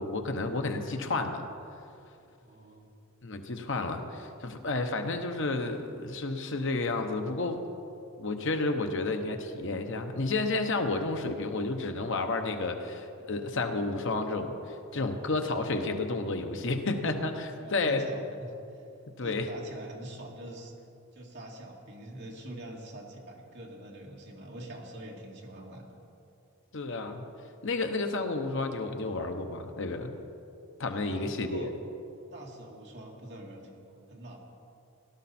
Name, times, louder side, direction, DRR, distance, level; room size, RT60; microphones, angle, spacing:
voice 1, 0.0-1.4 3.2-7.6 8.2-18.0 19.2-19.5 26.7-27.2 27.6-30.2 30.8-31.7, left 3 dB, 60° left, 6 dB, 0.9 m, -31 dB
voice 2, 2.4-2.9 17.5-18.9 19.2-20.7 21.1-26.0 30.8-31.7 32.3-34.4, right 1 dB, 50° right, -2 dB, 2.2 m, -45 dB
17.5 x 12.0 x 4.3 m, 2.6 s
head